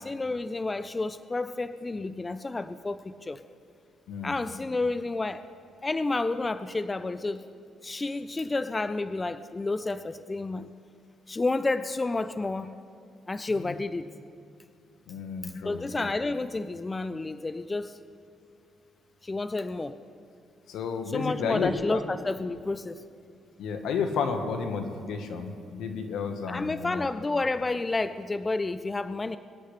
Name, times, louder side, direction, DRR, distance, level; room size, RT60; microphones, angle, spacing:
voice 1, 0.0-3.4 4.2-5.5 5.8-7.4 7.8-10.7 11.3-12.8 13.3-14.1 15.4-18.0 19.2-20.0 21.1-23.0 26.5-29.4, left 3 dB, 20° left, 12 dB, 0.4 m, -30 dB
voice 2, 4.1-4.4 13.6-13.7 15.1-16.1 20.7-22.0 23.6-27.1, left 5 dB, 80° left, 6 dB, 1.3 m, -32 dB
24.0 x 10.0 x 3.3 m, 2.3 s
cardioid pair, 90°, 0 cm